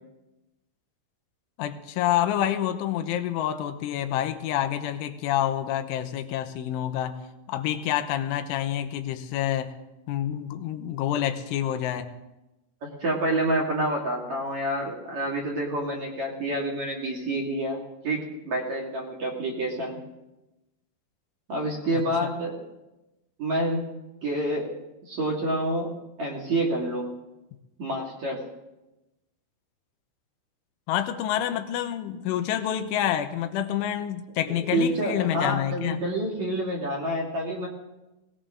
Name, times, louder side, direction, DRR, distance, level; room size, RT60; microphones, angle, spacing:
voice 1, 1.6-7.2 7.5-9.8 10.1-12.1 21.9-22.0 30.9-36.0, left 11 dB, 90° left, 8 dB, 3.4 m, -28 dB
voice 2, 12.8-20.0 21.5-22.6 23.4-23.9 24.2-24.7 25.1-25.9 26.2-27.1 27.8-28.4 34.5-37.7, right 1 dB, 45° right, -1 dB, 3.0 m, -28 dB
19.0 x 19.0 x 3.8 m, 0.98 s
omnidirectional pair, 5.5 m